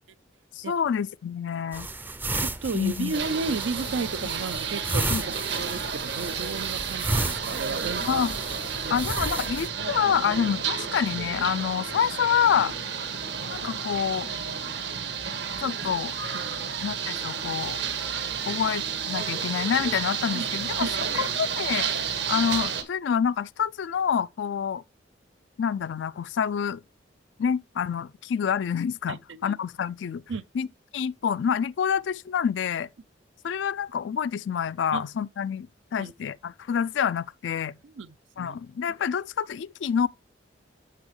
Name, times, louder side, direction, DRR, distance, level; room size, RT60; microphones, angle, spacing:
voice 1, 0.6-1.9 2.7-3.1 5.1-5.2 8.0-8.3 8.9-12.7 13.5-14.3 15.6-16.2 16.8-17.8 18.5-20.9 21.2-21.9 22.3-24.8 25.6-26.8 27.4-30.2 30.5-30.7 30.9-32.9 33.4-37.8 38.4-40.1, left 7 dB, 80° left, 0.3 m, -27 dB
sound 1, 1.7-9.7, right 2 dB, 10° right, 0.4 m, -33 dB
voice 2, 2.4-8.3 8.8-9.1 16.3-16.6 20.3-20.5 20.8-20.9 29.1-29.5 30.3-30.4 34.9-35.0 36.0-36.1 37.8-38.6, right 4 dB, 85° right, 0.5 m, -33 dB
sound 2, 3.1-22.8, right 6 dB, 70° right, 1.3 m, -31 dB
7.5 x 6.9 x 3.1 m
head